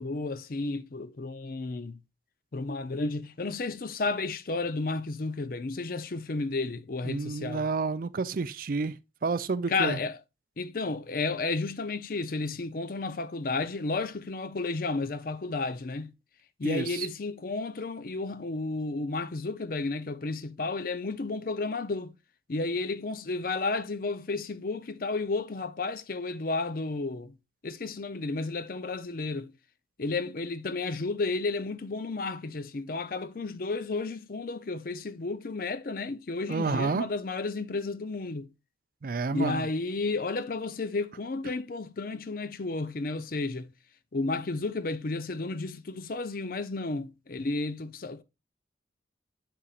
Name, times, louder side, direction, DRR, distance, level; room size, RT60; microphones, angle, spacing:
voice 1, 0.0-2.0 2.5-7.7 9.7-10.2 10.6-16.1 16.6-22.2 22.5-27.4 27.6-29.5 30.0-38.5 39.3-43.7 44.1-48.2, left 3 dB, 50° left, 0.6 m, -32 dB
voice 2, 7.1-9.0 9.2-10.0 16.6-17.1 36.5-37.1 39.0-39.6, right 4 dB, 50° right, 0.4 m, -30 dB
7.6 x 6.9 x 2.4 m
head